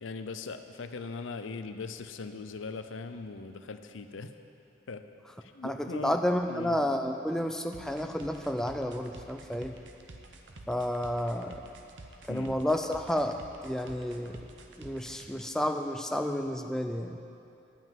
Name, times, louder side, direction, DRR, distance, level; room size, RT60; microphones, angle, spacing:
voice 1, 0.0-4.3 4.9-5.0 5.4-6.2 6.5-6.8 12.3-12.6, left 4 dB, 90° left, 9 dB, 0.6 m, -40 dB
voice 2, 5.6-9.7 10.7-11.6 12.3-13.4 13.6-14.5 14.8-17.2, left 1 dB, 5° left, 5 dB, 0.3 m, -31 dB
sound 1, 7.7-15.3, right 2 dB, 75° right, 0.8 m, -49 dB
11.5 x 5.7 x 9.0 m, 2.7 s
head